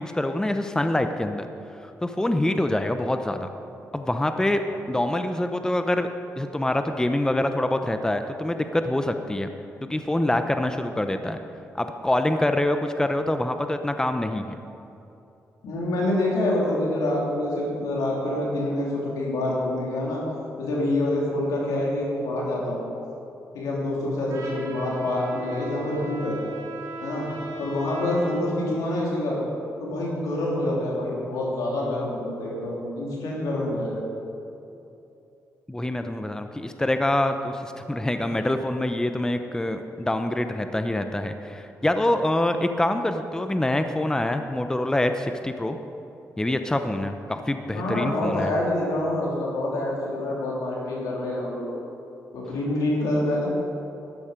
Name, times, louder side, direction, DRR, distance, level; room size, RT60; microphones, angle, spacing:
voice 1, 0.0-1.5 2.0-3.5 3.9-4.6 4.9-6.1 6.4-9.5 9.9-11.4 11.7-14.6 35.7-45.8 46.4-48.5, left 1 dB, 10° left, 7 dB, 0.8 m, -25 dB
voice 2, 15.6-20.2 20.6-22.8 23.5-26.4 27.0-27.3 27.6-29.4 29.8-34.0 47.7-51.7 52.3-53.5, left 1 dB, 85° left, -4 dB, 3.3 m, -26 dB
Trumpet, 24.3-28.5, right 3 dB, 70° right, 2.6 m, -38 dB
13.0 x 10.5 x 5.2 m, 2.8 s
cardioid pair, 65°, 6 cm